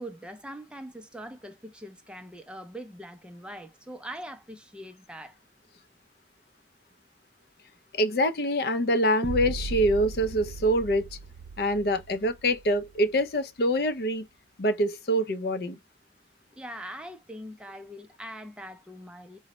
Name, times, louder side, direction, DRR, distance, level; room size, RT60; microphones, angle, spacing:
voice 1, 0.0-5.4 16.5-19.4, equal, 5° right, 0.4 m, -42 dB
voice 2, 7.9-11.1 11.6-14.3 14.6-15.8, equal, 60° left, 0.5 m, -25 dB
sound 1, 9.2-13.2, right 4 dB, 80° right, 0.3 m, -38 dB
3.9 x 2.1 x 3.0 m
head